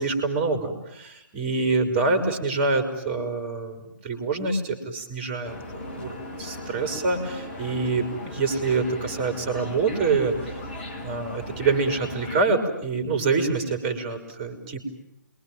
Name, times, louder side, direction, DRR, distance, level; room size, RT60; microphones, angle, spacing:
voice 1, 0.0-10.6 11.0-14.8, right 4 dB, 25° right, 8 dB, 4.5 m, -26 dB
sound 1, 5.4-12.4, left 1 dB, 35° left, 3.7 m, -37 dB
27.5 x 22.5 x 9.2 m, 0.83 s
figure-of-eight pair, 140°, 10 cm